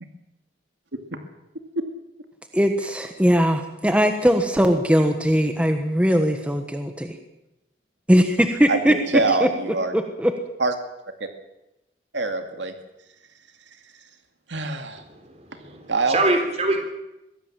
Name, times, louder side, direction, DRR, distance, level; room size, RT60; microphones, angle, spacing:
voice 1, 2.5-7.2 8.1-8.9 9.3-9.5 9.9-10.3, equal, 5° right, 6 dB, 1.3 m, -20 dB
voice 2, 9.1-9.9 10.6-10.7 12.1-12.7 14.5-15.0 15.9-16.2, right 3 dB, 85° right, 6 dB, 2.3 m, -23 dB
voice 3, 15.0-16.8, right 2 dB, 35° right, 5 dB, 3.6 m, -25 dB
22.5 x 16.0 x 7.5 m, 0.92 s
head